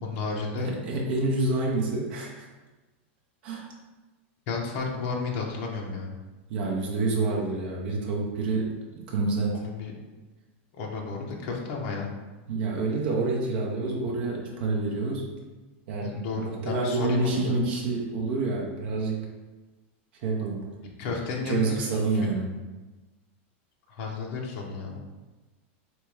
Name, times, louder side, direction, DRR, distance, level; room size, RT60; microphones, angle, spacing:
voice 1, 0.0-0.7 4.5-6.1 9.5-9.9 10.8-12.1 16.0-17.5 21.0-21.8 23.9-25.0, left 4 dB, 40° left, -1 dB, 0.9 m, -32 dB
voice 2, 0.6-2.5 3.4-3.7 6.5-9.6 12.5-15.3 15.9-19.2 20.2-20.7 21.5-22.5, right 3 dB, 50° right, -2 dB, 0.8 m, -28 dB
3.5 x 3.0 x 4.7 m, 1.2 s
supercardioid pair, 170°, 7 cm